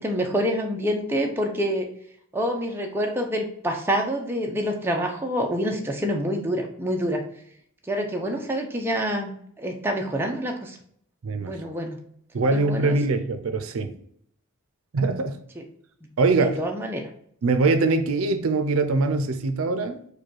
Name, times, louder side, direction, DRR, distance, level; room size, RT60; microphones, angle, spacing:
voice 1, 0.0-1.9 2.3-7.3 7.9-10.8 11.4-12.0 12.5-13.0 15.6-15.7 16.4-17.1, equal, 10° right, 1 dB, 0.5 m, -27 dB
voice 2, 11.2-11.6 12.3-13.9 14.9-15.4 16.2-16.6 17.4-20.0, right 3 dB, 80° right, 8 dB, 0.5 m, -23 dB
4.8 x 2.3 x 4.5 m, 0.67 s
head